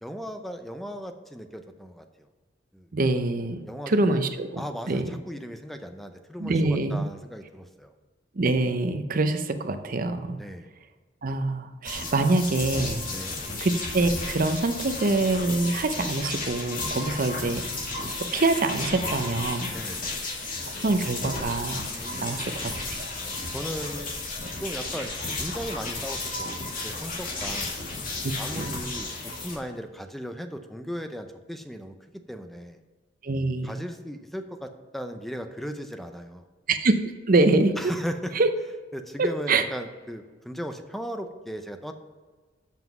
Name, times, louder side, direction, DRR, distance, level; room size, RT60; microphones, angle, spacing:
voice 1, 0.0-2.3 2.7-2.9 3.6-4.2 4.6-7.9 10.4-10.7 13.1-13.4 16.9-17.2 19.7-20.1 21.9-22.6 23.5-24.1 24.6-27.7 28.3-31.9 32.3-32.8 33.6-36.5 37.8-38.3 38.9-41.9, equal, ahead, 7 dB, 0.5 m, -37 dB
voice 2, 2.9-5.1 6.4-7.0 8.3-10.4 11.2-13.0 13.6-17.6 18.2-19.7 20.8-21.9 22.2-23.1 28.2-28.9 33.2-33.8 36.7-37.0 37.3-37.8 38.3-38.5 39.2-39.6, right 2 dB, 45° right, 9 dB, 0.6 m, -25 dB
sound 1, 11.8-29.5, left 3 dB, 45° left, 2.0 m, -33 dB
7.3 x 5.9 x 5.8 m, 1.4 s
head